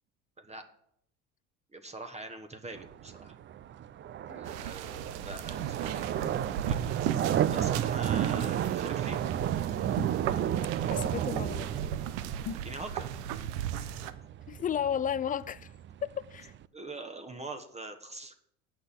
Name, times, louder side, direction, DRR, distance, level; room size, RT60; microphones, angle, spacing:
voice 1, 1.7-3.3 4.3-6.8 7.1-9.2 12.6-13.1 16.7-18.4, right 2 dB, 20° right, 1.1 m, -43 dB
sound 1, 2.7-16.6, right 10 dB, 35° right, 0.5 m, -33 dB
voice 2, 4.3-4.7 8.3-8.5 10.8-11.7 14.5-15.7 16.0-16.5, left 9 dB, 25° left, 0.4 m, -34 dB
sound 2, 4.5-14.1, right 9 dB, 80° right, 0.8 m, -37 dB
sound 3, 10.0-10.4 12.4-12.8, left 8 dB, 55° left, 1.1 m, -40 dB
8.0 x 6.2 x 7.4 m
hypercardioid pair, 80°, 34 cm